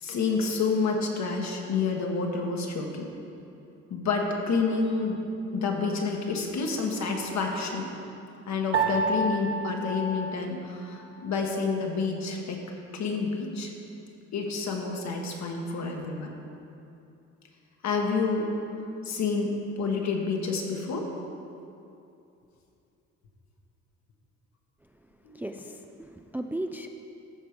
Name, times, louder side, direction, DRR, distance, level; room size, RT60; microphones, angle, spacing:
voice 1, 0.0-3.1 3.9-5.2 5.5-7.9 8.5-12.6 12.9-13.7 14.3-16.3 17.8-18.5 19.0-21.1 25.2-25.4, left 4 dB, 65° left, 1 dB, 1.4 m, -29 dB
Piano, 8.7-11.3, right 3 dB, 40° right, 1.1 m, -30 dB
voice 2, 25.3-26.9, right 1 dB, 5° right, 6 dB, 0.3 m, -36 dB
13.5 x 4.6 x 5.1 m, 2.7 s
cardioid pair, 90°, 30 cm